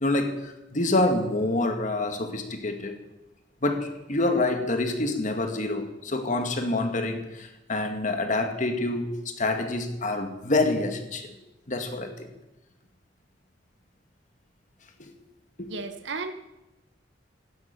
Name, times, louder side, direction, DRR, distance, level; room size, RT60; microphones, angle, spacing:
voice 1, 0.0-3.0 3.6-11.4 11.7-12.3 15.0-15.1 15.6-15.7, left 2 dB, 40° left, 6 dB, 2.0 m, -27 dB
voice 2, 15.7-16.3, right 4 dB, 75° right, 9 dB, 1.5 m, -33 dB
12.5 x 12.5 x 9.0 m, 0.97 s
head